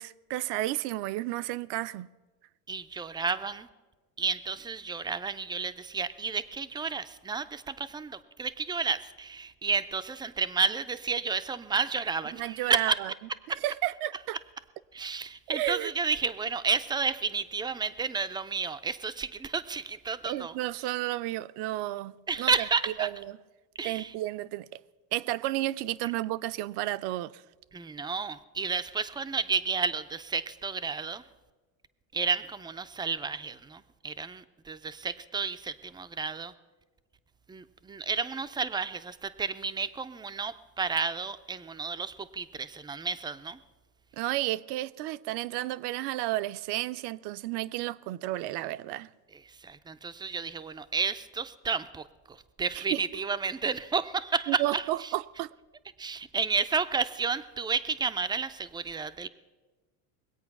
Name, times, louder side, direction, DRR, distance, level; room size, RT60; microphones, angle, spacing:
voice 1, 0.0-2.1 12.4-12.9 13.6-14.4 15.5-15.9 20.2-22.5 23.0-23.1 23.8-24.8 25.1-27.4 44.1-49.1 52.8-53.0 54.5-55.5, right 16 dB, 60° right, 0.6 m, -32 dB
voice 2, 2.7-3.7 4.2-13.0 13.5-13.6 14.9-20.5 22.3-23.1 23.8-24.2 26.0-26.1 27.7-31.2 32.1-36.5 37.5-43.6 49.3-55.1 56.0-59.3, right 5 dB, 10° right, 0.4 m, -31 dB
22.0 x 8.5 x 5.9 m
supercardioid pair, 110°, 46 cm